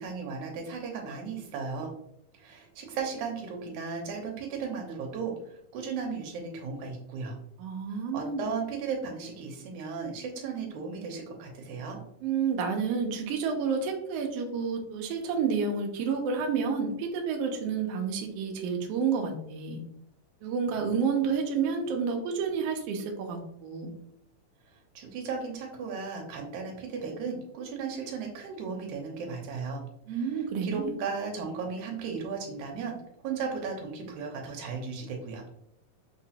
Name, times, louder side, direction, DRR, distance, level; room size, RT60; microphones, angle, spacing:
voice 1, 0.0-1.9 2.3-7.4 7.9-12.0 25.0-29.8 30.1-32.9 33.2-35.4, right 5 dB, 70° right, 2 dB, 2.1 m, -36 dB
voice 2, 7.6-8.5 12.2-19.8 20.4-23.9 30.1-30.9, right 5 dB, 90° right, 2 dB, 1.3 m, -30 dB
6.3 x 3.0 x 2.8 m, 0.74 s
omnidirectional pair, 3.9 m